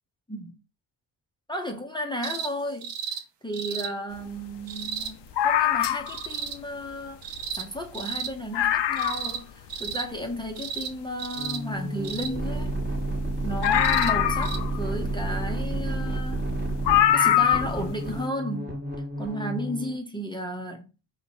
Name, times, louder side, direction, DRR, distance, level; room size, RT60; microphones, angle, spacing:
voice 1, 1.5-12.7 13.4-16.5 17.1-18.8 19.2-20.9, equal, 10° left, 0.7 m, -34 dB
sound 1, 2.2-2.5 2.8-3.2 3.5-3.9 4.7-5.1 6.1-6.6 7.2-7.7 7.9-8.3 9.0-9.4 9.7-10.1 10.6-10.9 11.2-11.6 12.0-12.3 13.6-14.1 14.4-14.6 15.7-15.8, right 7 dB, 60° right, 0.7 m, -33 dB
sound 2, 5.4-6.3 7.4-7.5 7.8-7.9 8.2-8.3 8.5-9.4 9.9-10.0 13.6-14.9 16.1-16.2 16.9-17.8 18.1-18.2, left 11 dB, 60° left, 0.6 m, -22 dB
sound 3, 11.4-20.0, right 1 dB, 20° right, 1.2 m, -31 dB
4.1 x 2.8 x 2.8 m
supercardioid pair, 65°, 49 cm